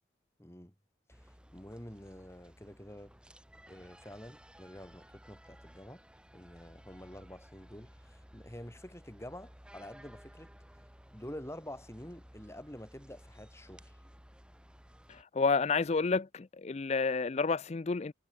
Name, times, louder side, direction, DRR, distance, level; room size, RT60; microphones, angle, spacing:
voice 1, 0.4-0.7 1.1-3.2 3.7-6.0 6.3-10.5 11.1-14.0, left 1 dB, 15° left, 2.5 m, -48 dB
sound 1, 1.1-15.2, equal, 5° right, 4.2 m, -56 dB
voice 2, 15.1-18.1, left 4 dB, 35° left, 0.4 m, -30 dB
head